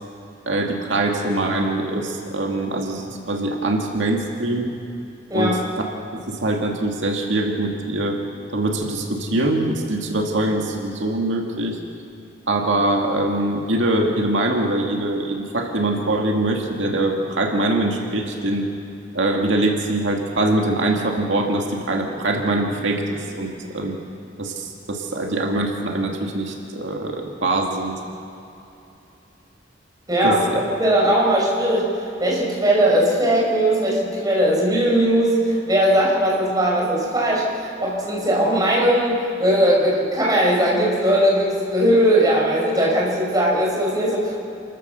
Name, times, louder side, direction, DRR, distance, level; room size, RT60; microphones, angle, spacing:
voice 1, 0.5-4.7 5.3-5.6 6.3-8.2 8.5-11.8 12.5-18.6 19.1-23.9 24.4-28.0 30.2-30.6, right 2 dB, 85° right, 1 dB, 2.1 m, -23 dB
voice 2, 30.1-31.9 32.2-44.4, right 1 dB, 20° right, -4 dB, 5.6 m, -19 dB
28.5 x 14.5 x 6.8 m, 2.9 s
head